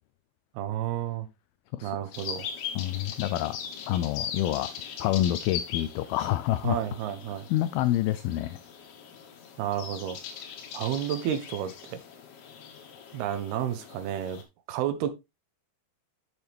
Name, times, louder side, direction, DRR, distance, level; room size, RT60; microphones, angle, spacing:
voice 1, 0.6-1.3 1.8-2.5 6.6-7.5 9.6-10.2 10.7-12.0 13.1-14.4 14.7-15.1, right 10 dB, 75° right, 2.7 m, -31 dB
sound 1, 2.1-14.4, left 8 dB, 70° left, 3.6 m, -40 dB
voice 2, 2.8-3.6 3.9-4.7 5.0-6.8 7.5-8.6, left 14 dB, 85° left, 2.1 m, -27 dB
8.0 x 7.0 x 3.4 m
omnidirectional pair, 4.9 m